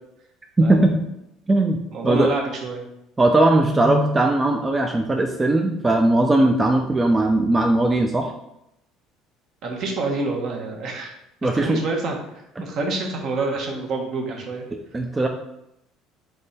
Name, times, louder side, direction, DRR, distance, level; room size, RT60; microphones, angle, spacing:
voice 1, 0.6-0.9 1.5-1.8 2.0-2.3 3.2-8.3 11.4-11.8 12.6-12.7 14.9-15.3, right 2 dB, 20° right, 3 dB, 0.4 m, -19 dB
voice 2, 1.9-2.8 9.6-11.1 11.5-12.2 12.6-14.6, right 3 dB, 55° right, 1 dB, 1.0 m, -27 dB
3.5 x 3.3 x 4.1 m, 0.83 s
supercardioid pair, 105°, 0 cm